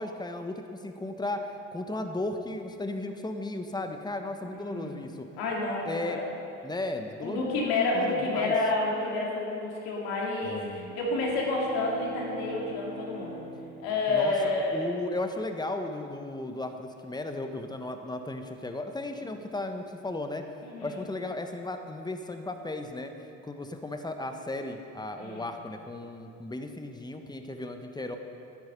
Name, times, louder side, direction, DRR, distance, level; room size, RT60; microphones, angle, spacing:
voice 1, 0.0-5.3 5.9-6.2 6.6-7.4 7.9-8.5 10.4-10.8 14.1-20.4 20.8-23.1 23.4-28.2, left 2 dB, 10° left, 6 dB, 1.2 m, -35 dB
voice 2, 4.6-5.0 5.4-6.2 7.2-13.4 13.8-15.0 19.3-19.4 20.6-21.0 25.1-25.5, left 2 dB, 75° left, -2 dB, 2.7 m, -29 dB
sound 1, 10.7-14.7, right 1 dB, 20° right, 1.7 m, -43 dB
12.5 x 9.4 x 5.5 m, 2.6 s
hypercardioid pair, 55°, 37 cm